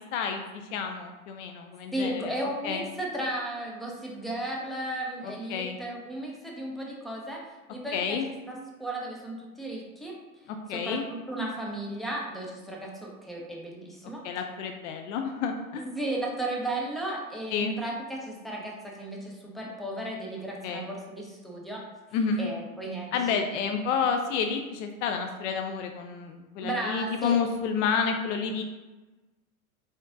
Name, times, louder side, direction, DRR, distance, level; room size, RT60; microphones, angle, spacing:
voice 1, 0.1-2.3 2.6-2.8 5.5-5.8 7.9-8.3 10.7-11.0 14.2-15.8 17.5-17.7 20.6-20.9 22.1-22.5 23.1-28.6, left 6 dB, 60° left, 5 dB, 0.5 m, -29 dB
voice 2, 1.9-7.4 7.7-10.2 10.7-14.2 15.8-21.8 22.4-23.7 26.6-27.4, right 1 dB, ahead, -2 dB, 0.4 m, -35 dB
3.9 x 3.5 x 2.5 m, 1.2 s
hypercardioid pair, 100°, 43 cm